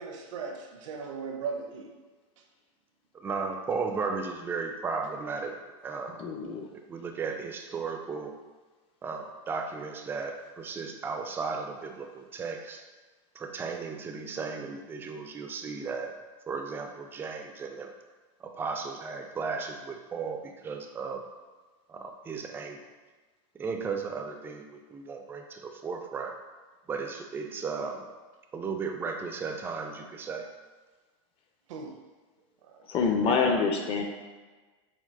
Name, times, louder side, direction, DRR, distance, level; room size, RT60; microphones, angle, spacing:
voice 1, 0.0-1.9 31.7-31.9 32.7-32.9, right 5 dB, 75° right, 2 dB, 0.6 m, -37 dB
voice 2, 3.1-5.6 5.8-6.2 6.9-8.3 9.0-12.8 13.4-16.1 16.5-17.9 18.4-21.2 21.9-22.8 23.5-26.4 26.9-28.1 28.5-30.5 33.3-33.7, right 5 dB, 15° right, 4 dB, 0.3 m, -35 dB
voice 3, 6.2-6.7 32.9-34.0, left 5 dB, 35° left, 3 dB, 0.6 m, -26 dB
4.5 x 2.2 x 3.5 m, 1.3 s
supercardioid pair, 125°, 16 cm